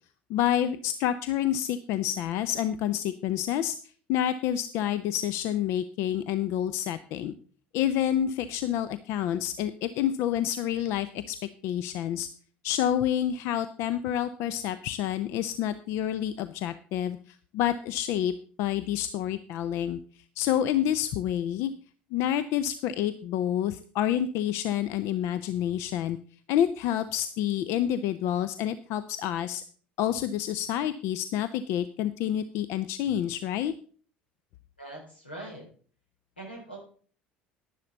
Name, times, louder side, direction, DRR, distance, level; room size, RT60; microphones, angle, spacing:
voice 1, 0.3-3.7 4.1-7.3 7.7-11.4 11.6-12.3 12.6-20.0 20.4-21.7 22.1-26.2 26.5-29.6 30.0-33.7, left 11 dB, 55° left, 14 dB, 0.6 m, -28 dB
voice 2, 34.8-35.6 36.4-36.8, right 2 dB, 90° left, 0 dB, 4.0 m, -42 dB
11.0 x 10.5 x 4.0 m, 0.44 s
figure-of-eight pair, 65°, 5 cm